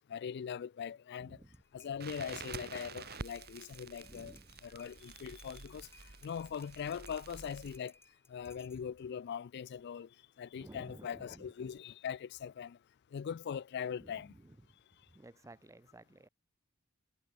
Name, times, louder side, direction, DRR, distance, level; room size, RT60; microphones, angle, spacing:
voice 1, 0.1-1.4 1.7-5.9 6.2-7.9 8.3-10.1 10.4-12.8 13.1-14.3, left 7 dB, 55° left, 0.3 m, -41 dB
sound 1, 1.5-9.1, left 3 dB, 10° left, 6.3 m, -61 dB
Crackle, 2.0-7.8, right 4 dB, 50° right, 1.7 m, -49 dB
voice 2, 4.0-4.5 10.6-11.5 14.0-14.5 15.1-16.3, right 1 dB, 15° right, 0.6 m, -54 dB
head